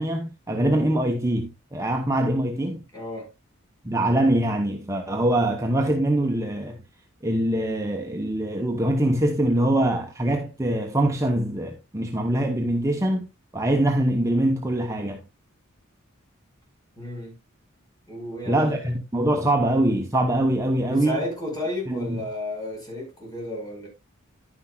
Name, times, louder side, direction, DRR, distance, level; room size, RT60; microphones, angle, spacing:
voice 1, 0.0-2.8 3.8-6.8 7.2-13.3 13.5-15.2 18.5-21.2 21.9-22.2, right 1 dB, 15° right, 0.9 m, -23 dB
voice 2, 2.9-3.3 17.0-17.4 18.1-18.8 20.8-23.9, left 1 dB, 20° left, 5.3 m, -32 dB
11.0 x 9.7 x 2.3 m
head